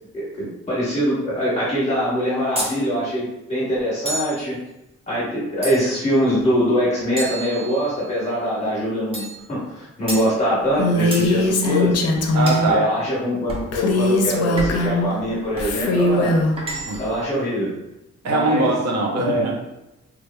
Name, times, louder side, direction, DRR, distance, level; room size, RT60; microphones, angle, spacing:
voice 1, 0.1-4.6 5.1-9.2 9.5-12.0 12.7-16.4 17.0-17.7 18.2-18.7 19.1-19.4, equal, 25° left, -8 dB, 1.2 m, -23 dB
sound 1, 2.6-2.8 4.1-4.4 5.6-6.1 7.2-8.1 9.1-9.4 10.1-10.3 11.1-11.3 12.5-12.7 13.5-13.7 14.6-14.9 15.6-15.8 16.6-17.2, equal, 20° right, 0.7 m, -30 dB
Female speech woman speaking, 10.8-12.7 13.7-15.1 15.6-16.5, left 2 dB, 60° left, 0.5 m, -20 dB
voice 2, 12.3-12.9 16.9-17.0 18.2-19.7, right 3 dB, 65° right, -1 dB, 0.8 m, -22 dB
3.7 x 3.0 x 2.3 m, 0.91 s
wide cardioid pair, 155°, 29 cm